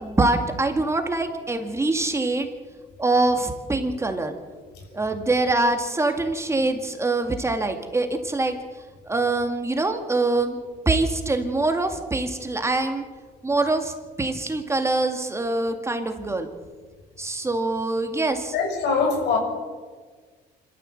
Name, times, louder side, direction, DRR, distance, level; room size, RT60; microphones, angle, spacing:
voice 1, 0.0-2.5 3.0-4.3 4.9-8.6 9.1-10.6 10.9-13.0 13.4-16.5 17.2-18.5, right 2 dB, 15° right, 5 dB, 2.1 m, -24 dB
voice 2, 18.5-19.4, left 5 dB, 80° left, 3 dB, 6.2 m, -22 dB
26.0 x 13.5 x 7.8 m, 1.5 s
cardioid pair, 110°, 17 cm